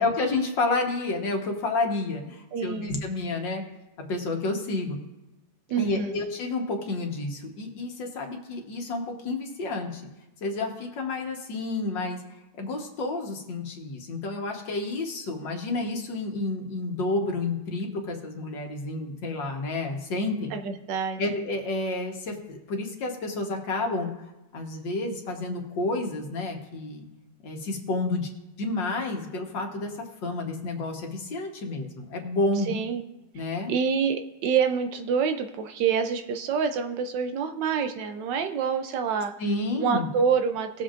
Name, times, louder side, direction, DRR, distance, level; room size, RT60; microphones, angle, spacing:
voice 1, 0.0-3.6 4.1-5.0 5.8-10.0 10.4-12.2 12.6-20.5 21.2-24.1 24.5-27.1 27.4-28.3 28.6-29.9 30.2-32.7 33.3-33.7 39.4-40.1, left 2 dB, 70° left, 2 dB, 2.0 m, -30 dB
voice 2, 2.5-3.0 5.7-6.2 20.5-21.2 32.7-33.0 33.4-33.5 33.7-39.3 39.8-40.8, right 6 dB, 75° right, 7 dB, 1.3 m, -27 dB
19.0 x 7.4 x 2.5 m, 1.0 s
omnidirectional pair, 2.1 m